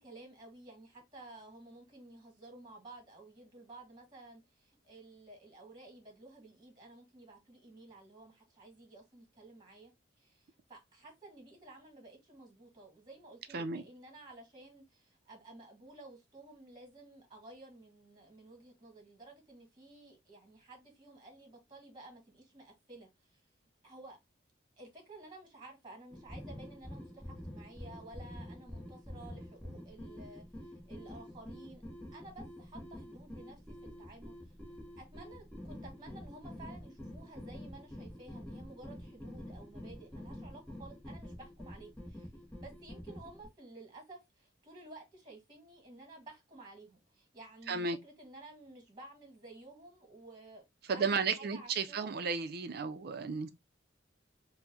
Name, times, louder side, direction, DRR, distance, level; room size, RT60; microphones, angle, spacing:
voice 1, 0.0-9.9 10.2-23.4 23.8-24.2 24.8-31.8 32.1-34.5 35.0-42.3 42.6-50.6 50.9-52.1, right 2 dB, 25° right, 1.4 m, -53 dB
sound 1, 26.1-43.5, equal, 5° left, 0.8 m, -47 dB
voice 2, 50.9-53.5, right 5 dB, 55° right, 0.5 m, -33 dB
4.4 x 2.1 x 2.7 m
head